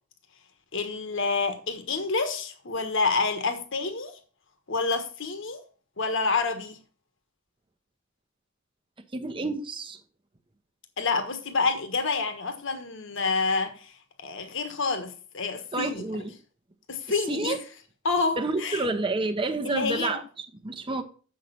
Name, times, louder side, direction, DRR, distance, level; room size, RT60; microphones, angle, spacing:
voice 1, 0.7-4.1 4.7-5.6 6.0-6.8 11.0-13.9 14.2-16.0 16.9-17.6 18.0-18.8 19.6-20.1, left 4 dB, 65° left, 1.4 m, -28 dB
voice 2, 9.1-10.0 15.7-16.3 17.1-17.6 18.4-21.0, right 3 dB, 25° right, 0.9 m, -29 dB
7.5 x 6.5 x 5.6 m
head